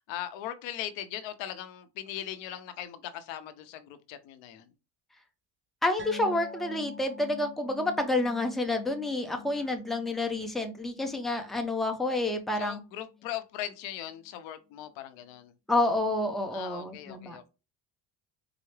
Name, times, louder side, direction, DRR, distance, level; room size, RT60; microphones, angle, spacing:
voice 1, 0.1-4.7 9.5-9.8 12.5-15.5 16.5-17.5, left 11 dB, 75° left, 0.8 m, -39 dB
voice 2, 5.8-12.8 15.7-17.4, left 2 dB, ahead, 0.6 m, -29 dB
sound 1, 6.0-12.8 13.1-13.3 13.7-13.8, left 5 dB, 25° right, 1.1 m, -46 dB
4.7 x 2.0 x 3.1 m
supercardioid pair, 85°, 45 cm